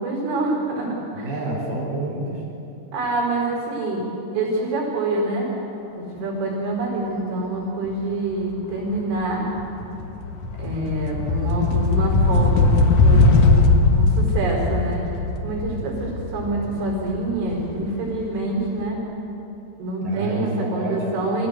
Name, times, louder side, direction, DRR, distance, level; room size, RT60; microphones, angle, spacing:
voice 1, 0.0-1.4 2.9-4.0 4.3-5.5 6.0-9.5 10.6-15.1 15.4-19.0 19.8-21.5, right 2 dB, 80° right, -3 dB, 7.2 m, -26 dB
voice 2, 1.1-2.4 20.0-21.2, right 2 dB, 55° right, -2 dB, 5.7 m, -28 dB
sound 1, 8.7-9.0 9.3-18.2, left 3 dB, 65° left, 2.2 m, -19 dB
25.0 x 16.0 x 8.0 m, 3.0 s
omnidirectional pair, 5.4 m